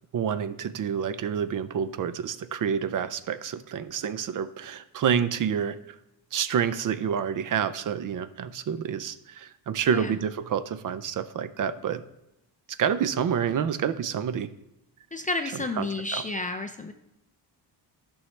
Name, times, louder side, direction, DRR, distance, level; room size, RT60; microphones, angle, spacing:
voice 1, 0.1-5.8 6.3-12.0 12.8-14.5 15.8-15.9 16.1-16.2, right 8 dB, 50° right, 13 dB, 0.5 m, -28 dB
voice 2, 15.1-16.9, left 2 dB, 20° left, 6 dB, 0.3 m, -31 dB
14.5 x 6.3 x 3.2 m, 0.89 s
cardioid pair, 170°, 43 cm